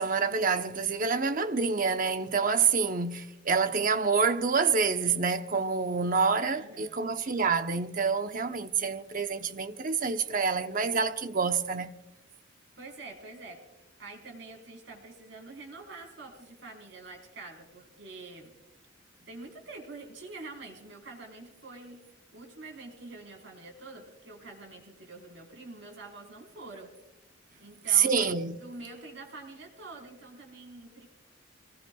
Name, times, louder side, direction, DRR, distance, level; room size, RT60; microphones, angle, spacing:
voice 1, 0.0-11.9 27.9-28.6, right 5 dB, 45° right, 0.9 m, -27 dB
voice 2, 6.5-7.1 12.8-13.6 14.0-18.5 19.3-22.0 22.3-27.0 27.6-28.2 28.5-31.1, right 3 dB, 65° right, 4.4 m, -46 dB
27.5 x 20.0 x 2.3 m
head